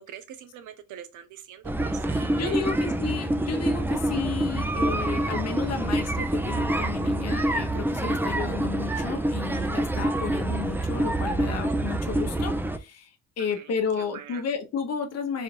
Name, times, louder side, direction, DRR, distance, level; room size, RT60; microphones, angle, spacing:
voice 1, 0.1-2.7 8.0-8.1 13.5-14.4, right 9 dB, 80° right, 0.7 m, -43 dB
sound 1, 1.6-12.8, right 1 dB, 5° right, 0.4 m, -26 dB
voice 2, 2.1-13.1 13.4-15.4, left 6 dB, 60° left, 0.9 m, -32 dB
4.1 x 2.4 x 3.2 m
cardioid pair, 90°, 30 cm